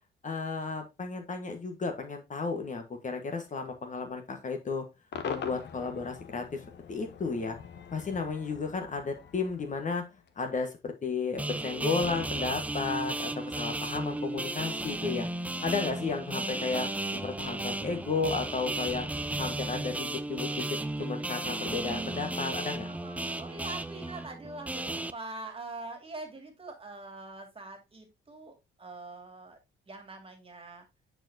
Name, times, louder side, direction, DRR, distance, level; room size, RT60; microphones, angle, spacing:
voice 1, 0.2-4.8 5.2-6.6 6.9-7.6 7.9-10.0 10.4-15.3 15.6-19.1 19.4-20.6 21.0-22.9, left 4 dB, 40° left, 5 dB, 1.4 m, -33 dB
Cheering / Crowd / Fireworks, 5.1-10.4, left 6 dB, 60° left, 1.1 m, -43 dB
sound 1, 11.4-25.1, right 2 dB, 5° right, 0.4 m, -34 dB
voice 2, 22.8-29.6 29.9-30.9, right 3 dB, 30° right, 5 dB, 2.2 m, -44 dB
8.7 x 4.6 x 2.8 m, 0.23 s
cardioid pair, 90°, 20 cm